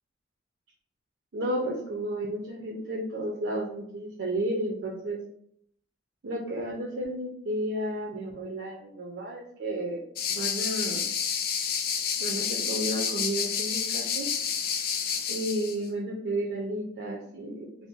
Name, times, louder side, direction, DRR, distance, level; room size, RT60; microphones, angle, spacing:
voice 1, 1.3-5.2 6.2-10.0 10.3-11.1 12.2-14.3 15.3-17.7, right 1 dB, 85° right, -3 dB, 0.5 m, -32 dB
sound 1, 10.2-15.8, left 7 dB, 55° left, 0.3 m, -29 dB
2.5 x 2.0 x 3.7 m, 0.69 s
head